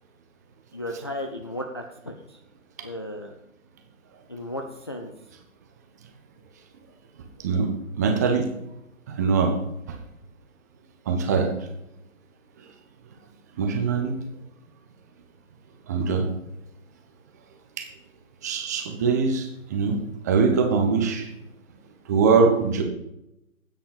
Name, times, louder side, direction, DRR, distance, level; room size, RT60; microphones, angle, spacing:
voice 1, 0.7-2.4 2.8-3.3 4.3-5.1, left 1 dB, 20° left, 2 dB, 0.5 m, -35 dB
voice 2, 8.0-8.5 9.1-9.5 11.1-11.5 13.6-14.1 15.9-16.3 17.8-17.9 18.4-20.0 20.2-21.3 22.1-22.8, right 5 dB, 10° right, 4 dB, 0.8 m, -22 dB
14.0 x 9.1 x 5.4 m, 0.85 s
figure-of-eight pair, 135°, 42 cm